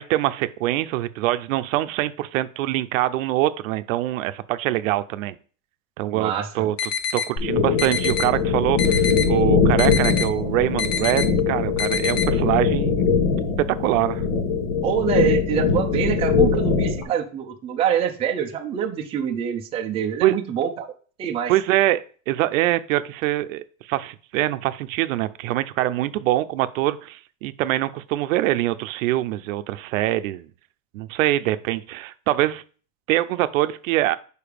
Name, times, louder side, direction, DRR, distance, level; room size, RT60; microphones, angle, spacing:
voice 1, 0.0-5.3 6.0-13.2 13.6-14.2 20.2-20.4 21.5-30.5 30.9-32.6 33.1-34.1, right 15 dB, 70° right, 12 dB, 0.6 m, -24 dB
voice 2, 6.1-6.7 14.8-20.9 21.2-21.5, right 8 dB, 15° right, 2 dB, 0.5 m, -25 dB
sound 1, 6.8-7.3 7.8-8.3 8.8-9.3 9.8-10.3 10.8-11.3 11.8-12.3, left 7 dB, 40° left, 0.8 m, -26 dB
sound 2, 7.4-17.0, left 5 dB, 65° left, 1.9 m, -21 dB
4.9 x 4.7 x 5.1 m, 0.40 s
supercardioid pair, 160°, 41 cm